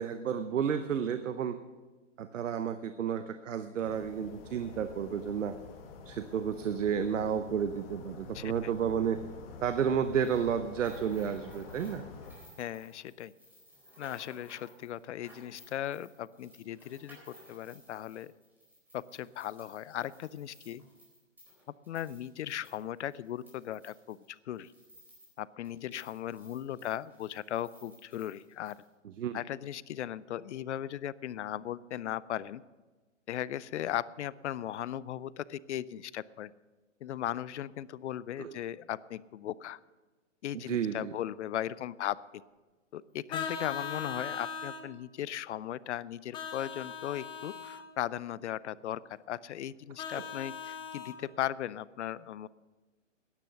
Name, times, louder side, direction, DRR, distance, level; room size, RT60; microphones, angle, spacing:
voice 1, 0.0-1.6 2.2-5.6 6.0-9.2 9.6-12.0 29.0-29.4 38.4-38.6 40.5-41.1 50.1-50.2, right 8 dB, 80° right, 10 dB, 0.8 m, -31 dB
sound 1, 3.8-12.3, left 4 dB, 50° left, 2.0 m, -48 dB
voice 2, 8.3-8.7 12.6-13.3 14.0-18.3 18.9-20.8 21.9-24.7 25.4-28.8 29.3-32.6 33.3-36.5 37.0-39.8 40.4-42.4 42.9-52.5, left 11 dB, 65° left, 20 dB, 0.5 m, -37 dB
sound 2, 10.2-25.4 25.6-28.9, equal, 5° right, 4.2 m, -58 dB
Vehicle horn car horn honking, 43.3-44.8 46.3-47.8 50.0-51.2, left 6 dB, 15° left, 0.7 m, -39 dB
13.0 x 10.5 x 5.8 m, 1.3 s
hypercardioid pair, 135°, 37 cm